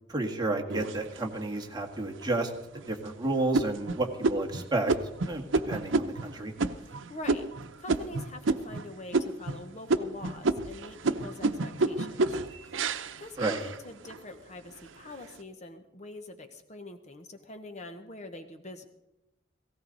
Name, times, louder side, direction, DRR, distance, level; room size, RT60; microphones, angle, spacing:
voice 1, 0.1-4.9 5.3-6.5 13.4-13.6, right 2 dB, 20° right, 2 dB, 1.7 m, -31 dB
sound 1, 0.7-1.6 2.1-2.2 2.7-3.1 3.5-8.8 9.1-9.6 9.9-14.2 14.7-15.2, right 3 dB, 80° right, 0.8 m, -30 dB
voice 2, 6.7-7.5 7.8-12.2 12.6-12.9 13.2-18.9, left 2 dB, 35° left, 7 dB, 1.0 m, -44 dB
17.5 x 17.0 x 4.0 m, 0.91 s
head